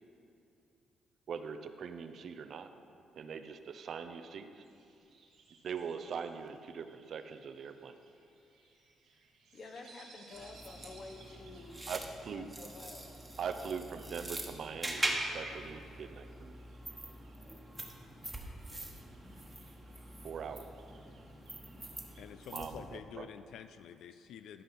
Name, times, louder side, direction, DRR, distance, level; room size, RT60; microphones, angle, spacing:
voice 1, 1.3-2.7 3.2-4.6 5.6-7.9 11.9-12.5 13.4-16.6 20.2-20.7 22.5-23.2, right 6 dB, 60° right, 9 dB, 0.6 m, -42 dB
sound 1, 4.6-22.3, right 3 dB, 80° right, 2.7 m, -64 dB
voice 2, 9.5-13.1, left 3 dB, 50° left, 4 dB, 1.1 m, -50 dB
sound 2, 10.3-23.0, right 1 dB, 10° right, 1.2 m, -43 dB
voice 3, 22.2-24.6, left 9 dB, 80° left, 11 dB, 0.4 m, -48 dB
13.0 x 5.5 x 5.7 m, 2.7 s
cardioid pair, 90°, 0 cm